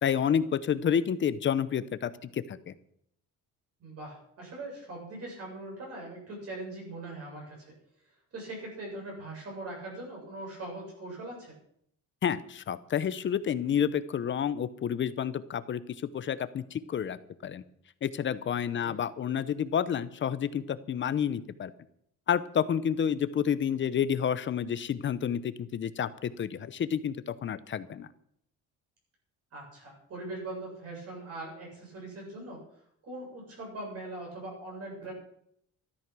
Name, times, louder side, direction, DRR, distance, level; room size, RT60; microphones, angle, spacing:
voice 1, 0.0-2.8 12.2-15.8 16.1-17.6 18.0-21.7 22.3-28.1, left 8 dB, 35° left, 14 dB, 0.7 m, -29 dB
voice 2, 3.8-7.7 8.3-11.6 18.8-19.0 29.5-32.6 33.0-35.1, right 2 dB, 45° right, -2 dB, 7.4 m, -41 dB
13.5 x 13.0 x 6.1 m, 0.70 s
cardioid pair, 170°, 33 cm